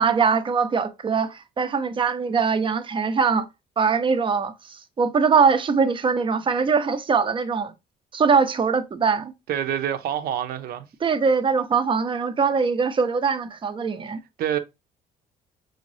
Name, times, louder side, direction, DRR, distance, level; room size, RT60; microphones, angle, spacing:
voice 1, 0.0-3.5 3.8-7.7 8.1-9.3 11.0-14.2, right 5 dB, 30° right, 0.7 m, -22 dB
voice 2, 9.5-10.9 14.4-14.6, right 10 dB, 65° right, 0.8 m, -26 dB
6.3 x 2.6 x 3.2 m
cardioid pair, 110°, 17 cm